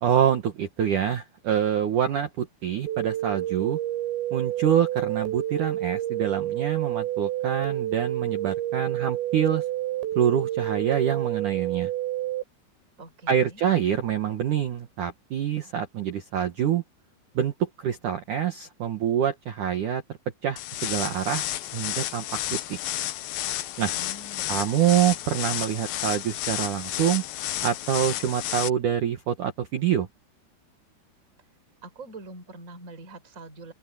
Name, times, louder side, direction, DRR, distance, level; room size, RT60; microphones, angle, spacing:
voice 1, 0.0-3.8 4.3-9.6 10.2-11.9 13.3-16.8 17.4-20.0 20.4-21.4 21.7-22.2 22.5-22.8 23.8-23.9 24.5-27.2 27.6-30.1, right 9 dB, 65° right, 2.0 m, -26 dB
sound 1, 2.9-12.4, right 13 dB, 90° right, 5.6 m, -29 dB
voice 2, 13.0-13.6 23.9-25.2 31.8-33.7, right 2 dB, 15° right, 5.0 m, -44 dB
sound 2, 20.6-28.7, left 14 dB, 90° left, 2.0 m, -31 dB
open air
omnidirectional pair, 5.6 m